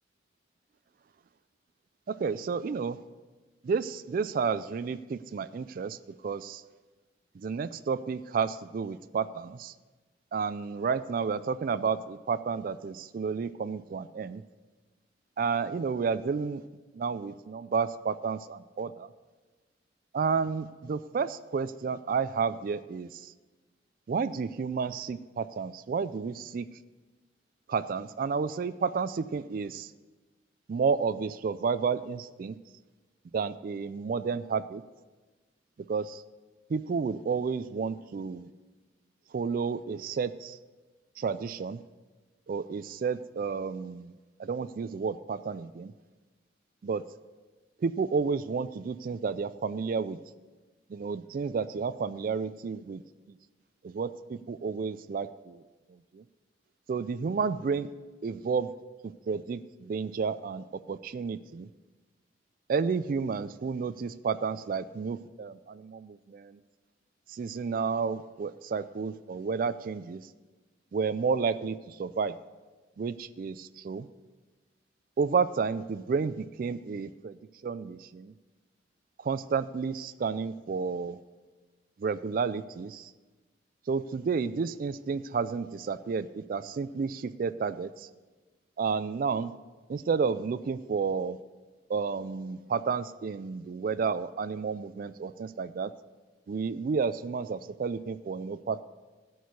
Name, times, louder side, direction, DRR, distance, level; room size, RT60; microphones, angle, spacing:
voice 1, 2.1-3.0 3.6-6.0 6.2-6.6 7.4-9.7 10.3-14.4 15.4-16.6 16.9-19.1 20.1-23.3 24.1-26.7 27.7-29.9 30.7-32.6 33.3-34.8 35.9-36.2 36.7-38.5 39.3-40.6 41.2-41.8 42.5-44.1 44.4-45.9 46.8-47.0 47.8-50.2 50.9-53.0 53.8-55.6 56.1-56.2 56.9-57.9 58.2-58.7 59.0-61.7 62.7-66.6 67.3-70.3 70.9-72.4 73.0-74.1 75.2-78.3 79.2-81.2 82.0-83.1 83.9-88.1 88.8-89.5 89.9-91.4 91.9-95.9 96.5-98.8, right 5 dB, 50° right, 13 dB, 0.3 m, -31 dB
12.5 x 4.7 x 8.1 m, 1.3 s
head